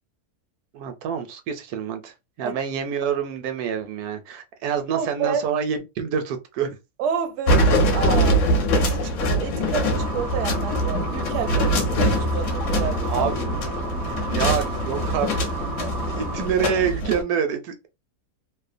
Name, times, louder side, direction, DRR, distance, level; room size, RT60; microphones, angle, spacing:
voice 1, 0.7-6.8 13.1-13.3 14.3-15.3 15.8-17.9, right 7 dB, 85° right, 1.1 m, -27 dB
voice 2, 4.9-5.5 7.0-7.6 7.9-8.4 8.7-13.2 13.6-13.7, right 7 dB, 70° right, 0.7 m, -29 dB
sound 1, 7.5-17.2, equal, 65° left, 1.0 m, -23 dB
sound 2, 9.9-16.5, right 2 dB, 10° right, 0.5 m, -32 dB
2.8 x 2.1 x 2.5 m
omnidirectional pair, 1.6 m